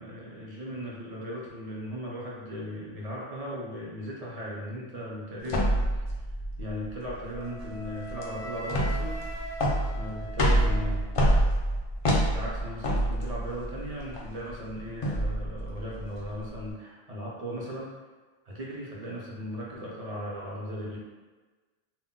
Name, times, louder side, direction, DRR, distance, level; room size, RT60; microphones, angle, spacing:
voice 1, 0.0-5.8 6.6-9.2 9.9-11.1 12.3-17.9 18.5-21.0, equal, 50° right, -4 dB, 0.5 m, -37 dB
sound 1, 5.5-16.7, equal, 55° left, 0.3 m, -27 dB
Wind instrument woodwind instrument, 7.3-11.4, right 1 dB, 90° left, 0.9 m, -42 dB
2.2 x 2.0 x 3.7 m, 1.3 s
omnidirectional pair, 1.1 m